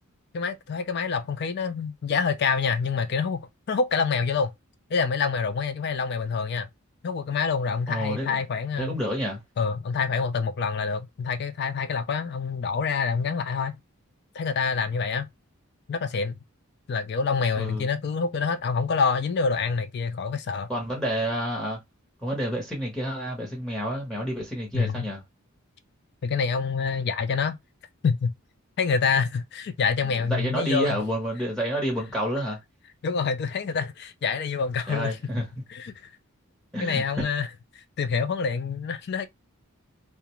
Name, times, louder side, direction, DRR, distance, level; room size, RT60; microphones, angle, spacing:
voice 1, 0.3-4.5 4.9-6.7 7.0-9.0 9.6-13.8 14.3-15.3 15.9-16.4 16.9-20.7 24.7-25.1 26.2-27.6 28.0-28.3 28.8-31.0 33.0-35.2 35.7-36.1 36.8-37.5 37.7-39.3, left 5 dB, 45° left, 0.3 m, -26 dB
voice 2, 7.9-8.4 8.8-9.4 17.6-17.9 20.7-21.8 22.2-25.2 30.3-32.6 34.9-35.5 36.7-37.2, equal, ahead, 0.8 m, -29 dB
2.3 x 2.2 x 2.9 m
head